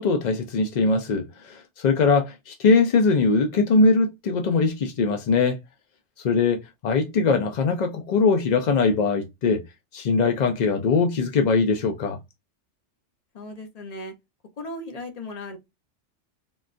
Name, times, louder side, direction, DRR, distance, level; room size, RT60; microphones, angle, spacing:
voice 1, 0.0-5.6 6.2-9.6 9.9-12.2, left 4 dB, 65° left, 0.4 m, -21 dB
voice 2, 13.3-14.1 14.6-15.6, left 1 dB, 40° left, 0.7 m, -36 dB
3.7 x 2.3 x 2.4 m
omnidirectional pair, 1.2 m